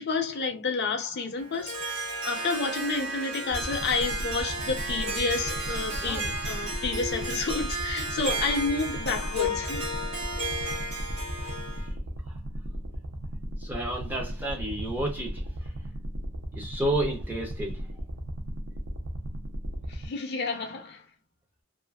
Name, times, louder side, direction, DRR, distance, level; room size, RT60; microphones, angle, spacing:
voice 1, 0.0-9.9 19.9-21.0, left 4 dB, 50° left, 0.5 m, -30 dB
Harp, 1.4-11.9, right 1 dB, 80° right, 1.1 m, -33 dB
sound 1, 3.5-20.1, equal, 60° right, 0.5 m, -36 dB
voice 2, 6.0-6.5 8.2-8.4 10.5-11.1 11.8-12.4 13.6-15.9 16.5-18.0, right 1 dB, 10° right, 0.5 m, -33 dB
2.5 x 2.4 x 2.2 m
head